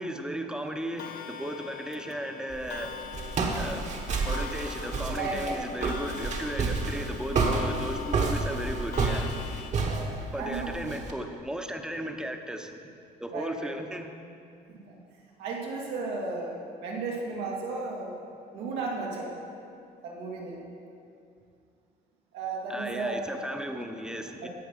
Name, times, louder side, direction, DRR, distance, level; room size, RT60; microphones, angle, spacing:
voice 1, 0.0-3.0 3.5-3.9 4.2-9.3 10.3-12.8 13.2-14.1 22.7-24.5, right 1 dB, 5° right, 5 dB, 0.9 m, -35 dB
Clock, 1.0-9.7, left 8 dB, 65° left, 0.6 m, -42 dB
Walk footsteps, 2.5-11.1, right 4 dB, 45° right, 1.3 m, -30 dB
voice 2, 5.1-5.6 9.8-10.7 13.3-13.7 14.7-15.0 15.4-18.1 18.5-19.3 20.0-20.6 22.3-23.3 24.4-24.5, right 3 dB, 90° right, -2 dB, 2.1 m, -34 dB
16.0 x 5.9 x 5.5 m, 2.5 s
cardioid pair, 110°, 17 cm